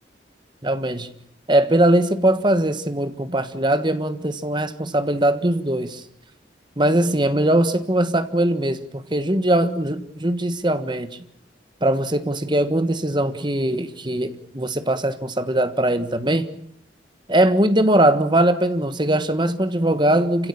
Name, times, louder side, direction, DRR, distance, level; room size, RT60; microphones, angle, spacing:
voice 1, 0.6-1.1 1.5-6.0 6.8-11.1 11.8-16.4 17.3-20.5, right 1 dB, 25° right, 10 dB, 1.5 m, -20 dB
28.5 x 16.5 x 8.8 m, 0.69 s
head